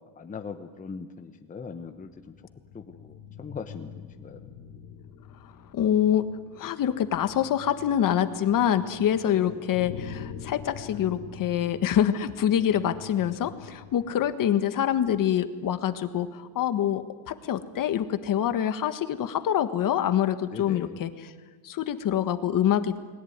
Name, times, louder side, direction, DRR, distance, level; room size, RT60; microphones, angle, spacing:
voice 1, 0.2-2.3 2.7-4.5 9.3-9.6 20.5-21.0, left 5 dB, 15° left, 6 dB, 1.0 m, -40 dB
sound 1, 1.8-14.3, left 8 dB, 70° left, 2.4 m, -45 dB
voice 2, 5.7-6.3 6.5-21.3 21.6-23.0, left 10 dB, 40° left, 10 dB, 1.5 m, -25 dB
29.5 x 21.0 x 9.6 m, 1.4 s
cardioid pair, 165°, 49 cm